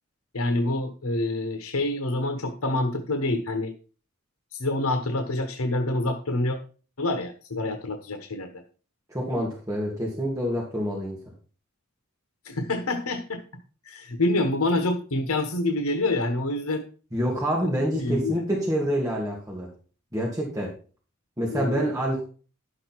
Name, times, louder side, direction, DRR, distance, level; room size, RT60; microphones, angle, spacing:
voice 1, 0.3-3.7 4.5-6.6 7.0-8.6 12.4-13.4 13.9-16.8 17.6-17.7 18.0-18.4 21.5-21.8, left 2 dB, 80° left, 7 dB, 1.1 m, -27 dB
voice 2, 9.1-11.2 17.1-19.7 20.1-20.7 21.4-22.2, equal, 15° right, -4 dB, 2.5 m, -27 dB
11.5 x 6.4 x 4.6 m, 0.38 s
head